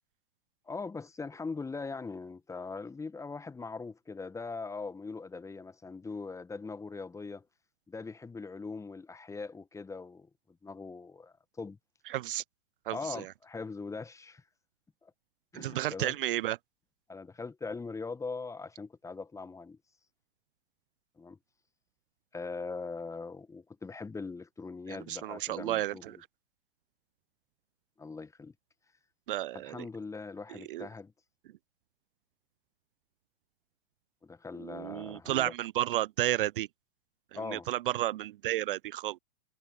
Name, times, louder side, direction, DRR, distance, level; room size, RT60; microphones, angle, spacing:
voice 1, 0.7-7.4 7.9-10.3 10.6-11.8 12.9-14.4 15.0-15.1 15.5-16.2 17.1-19.8 21.2-21.4 22.3-26.1 28.0-28.5 29.5-31.1 34.2-35.5 37.3-37.7, left 4 dB, 10° left, 1.4 m, -41 dB
voice 2, 12.1-12.4 12.9-13.3 15.5-16.6 24.9-26.2 29.3-29.9 30.5-30.9 34.6-36.7 37.3-39.2, right 14 dB, 55° right, 0.6 m, -32 dB
figure-of-eight pair, 100°, 33 cm